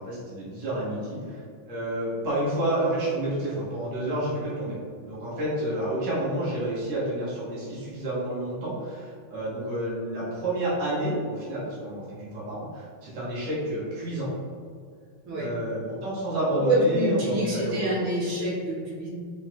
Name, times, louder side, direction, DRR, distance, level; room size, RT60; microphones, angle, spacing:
voice 1, 0.0-14.3 15.4-18.1, right 1 dB, 60° right, -9 dB, 1.9 m, -30 dB
voice 2, 16.6-19.1, right 1 dB, 85° right, -8 dB, 2.3 m, -26 dB
4.8 x 4.0 x 2.3 m, 2.2 s
omnidirectional pair, 2.3 m